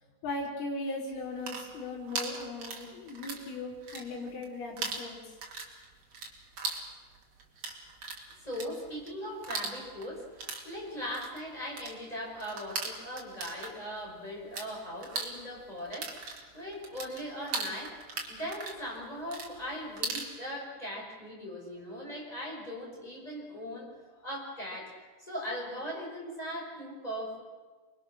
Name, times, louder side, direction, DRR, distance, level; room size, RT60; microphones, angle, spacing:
voice 1, 0.2-5.2, left 2 dB, 65° left, -3 dB, 6.0 m, -38 dB
sound 1, 1.2-3.5 3.8-4.5 4.8-14.7 15.0-20.3, right 4 dB, 45° right, 3.4 m, -39 dB
voice 2, 8.4-18.0 18.3-24.9 25.2-27.4, equal, 10° left, -3 dB, 5.8 m, -39 dB
27.0 x 22.0 x 6.6 m, 1.4 s
omnidirectional pair, 4.8 m